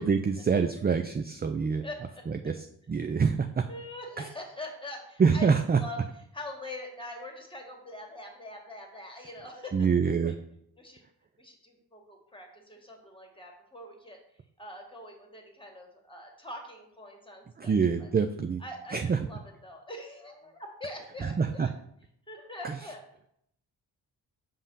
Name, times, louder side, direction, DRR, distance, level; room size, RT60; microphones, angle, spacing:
voice 1, 0.0-1.8 2.3-3.6 5.2-5.8 9.7-10.3 17.6-18.6 18.9-19.2 21.2-21.7, right 5 dB, 20° right, 7 dB, 0.4 m, -26 dB
voice 2, 1.8-2.3 3.7-6.0 6.3-9.9 10.2-10.3 10.8-11.0 11.4-14.2 14.6-18.1 18.6-21.7 22.3-23.0, left 1 dB, 10° left, 2 dB, 2.0 m, -43 dB
5.3 x 3.6 x 5.6 m, 0.72 s
supercardioid pair, 45°, 47 cm